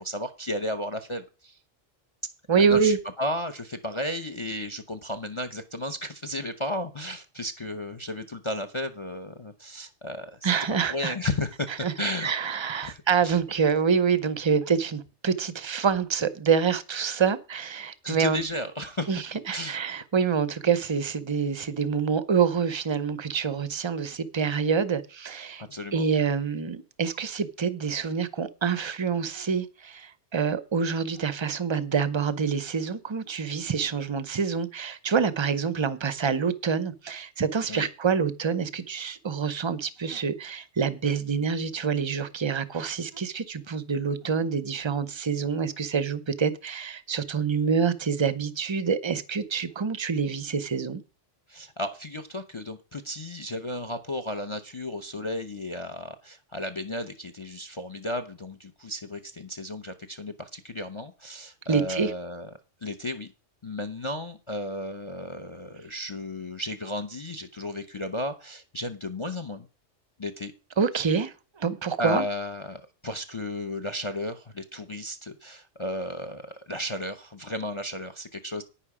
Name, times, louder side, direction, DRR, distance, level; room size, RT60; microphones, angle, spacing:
voice 1, 0.0-1.6 2.6-10.5 10.9-11.7 12.0-12.3 12.8-13.4 18.0-19.1 19.5-19.8 25.7-26.0 37.7-37.9 51.5-62.5 62.8-63.3 63.6-69.7 70.2-70.5 72.0-78.6, left 1 dB, 30° left, 0.7 m, -34 dB
voice 2, 2.5-3.0 10.4-11.1 11.8-11.9 12.2-18.4 19.1-25.6 25.9-51.0 61.7-62.1 70.8-72.2, right 6 dB, 30° right, 0.6 m, -26 dB
10.0 x 9.6 x 4.9 m
omnidirectional pair, 1.3 m